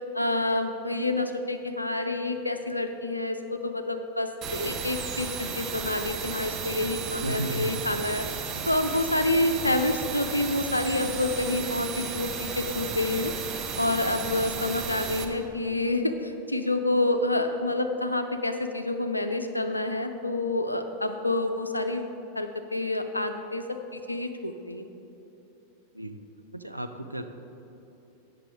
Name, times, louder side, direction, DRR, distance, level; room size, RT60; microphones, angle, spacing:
voice 1, 0.1-8.3 8.7-13.3 13.8-22.0 22.4-23.6 23.9-24.8, left 2 dB, 85° left, 7 dB, 0.4 m, -28 dB
sound 1, 4.4-15.2, right 6 dB, 35° right, 0.7 m, -34 dB
voice 2, 7.2-7.7 9.6-9.8 25.9-26.2 26.5-27.2, right 1 dB, 85° right, 7 dB, 0.4 m, -33 dB
8.3 x 5.9 x 4.7 m, 3.0 s
figure-of-eight pair, 90°, 0 cm